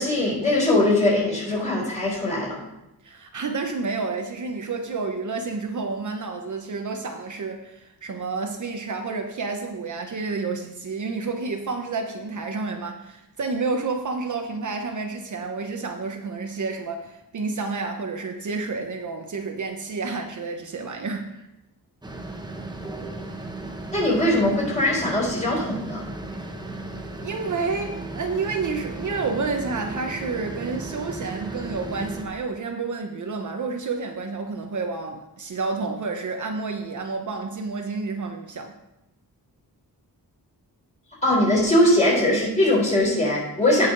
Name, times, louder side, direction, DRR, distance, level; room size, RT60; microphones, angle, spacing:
voice 1, 0.0-2.6 23.9-26.0 41.2-43.9, left 1 dB, 20° left, -4 dB, 3.8 m, -21 dB
voice 2, 3.0-21.5 26.6-26.8 27.2-38.7, right 4 dB, 50° right, 3 dB, 0.9 m, -30 dB
sound 1, 22.0-32.2, right 2 dB, 10° right, 0.9 m, -35 dB
17.0 x 5.7 x 3.9 m, 0.90 s
wide cardioid pair, 180°, 38 cm